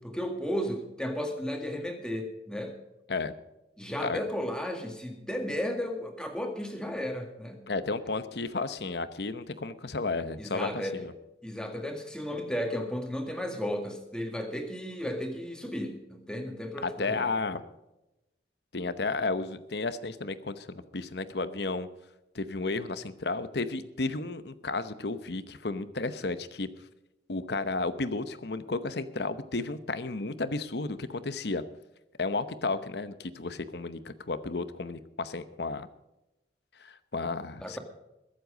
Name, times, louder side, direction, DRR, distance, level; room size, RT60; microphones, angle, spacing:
voice 1, 0.0-2.8 3.8-7.6 10.4-11.0 11.4-17.3 37.6-37.8, equal, 5° left, 4 dB, 2.0 m, -34 dB
voice 2, 7.7-11.1 16.8-17.6 18.7-21.9 22.3-26.7 27.3-31.6 32.2-35.9 36.8-37.8, left 3 dB, 60° left, 12 dB, 0.9 m, -33 dB
22.0 x 7.8 x 5.1 m, 0.94 s
head